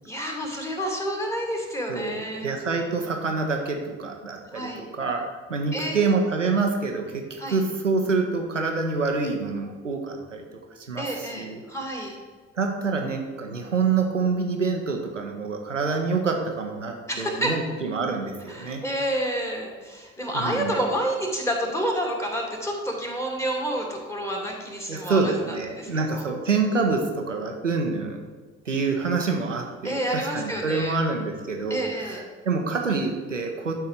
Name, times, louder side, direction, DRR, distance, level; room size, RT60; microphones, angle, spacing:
voice 1, 0.0-2.5 4.5-4.8 5.7-6.1 7.4-7.6 11.0-12.1 17.1-17.5 18.5-26.3 29.8-31.0 31.7-32.2, right 1 dB, 5° left, 0 dB, 2.6 m, -29 dB
voice 2, 1.9-5.2 5.5-11.6 12.5-18.8 20.3-20.7 24.9-28.2 28.7-32.2 32.4-33.7, right 4 dB, 85° right, 3 dB, 0.9 m, -26 dB
12.0 x 4.7 x 5.1 m, 1.5 s
figure-of-eight pair, 45°, 36 cm